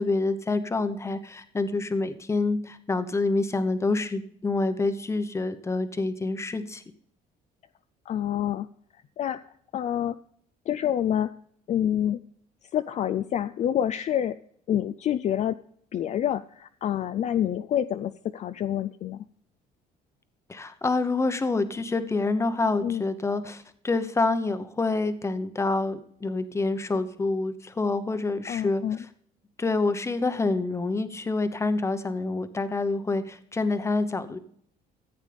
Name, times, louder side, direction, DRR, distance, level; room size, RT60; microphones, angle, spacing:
voice 1, 0.0-6.8 20.5-29.1 29.6-34.4, left 3 dB, 15° left, 10 dB, 1.0 m, -27 dB
voice 2, 8.1-8.7 8.9-9.4 9.7-10.2 10.7-11.3 11.7-12.2 12.7-14.4 14.7-15.6 15.9-19.2 22.8-23.0 28.4-29.0, left 10 dB, 45° left, 11 dB, 0.4 m, -27 dB
14.5 x 8.2 x 3.5 m, 0.63 s
cardioid pair, 120°, 17 cm